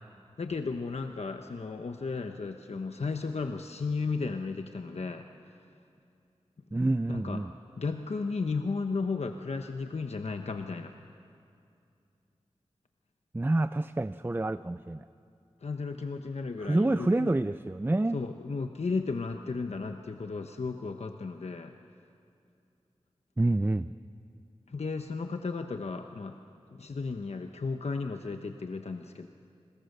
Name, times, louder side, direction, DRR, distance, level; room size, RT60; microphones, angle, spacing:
voice 1, 0.4-5.3 7.1-7.4 7.8-10.9 15.6-17.3 18.1-21.7 24.7-26.4 26.7-29.3, left 4 dB, 70° left, 6 dB, 1.0 m, -34 dB
voice 2, 6.7-7.5 13.3-15.1 16.6-18.2 23.4-23.9, right 2 dB, 20° right, 13 dB, 0.5 m, -27 dB
29.5 x 22.0 x 6.7 m, 2.5 s
wide cardioid pair, 50°, 11 cm